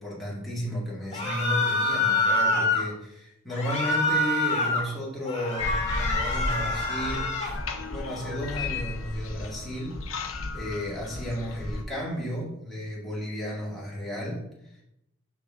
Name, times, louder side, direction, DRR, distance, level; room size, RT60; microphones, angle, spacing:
voice 1, 0.0-7.4 7.9-10.0 10.5-14.8, equal, ahead, -7 dB, 1.9 m, -33 dB
sound 1, 1.1-2.8 3.5-4.8 5.3-7.6, left 2 dB, 35° left, 1.8 m, -26 dB
sound 2, 5.6-11.8, left 2 dB, 70° left, 0.8 m, -33 dB
6.6 x 6.1 x 3.6 m, 0.84 s
head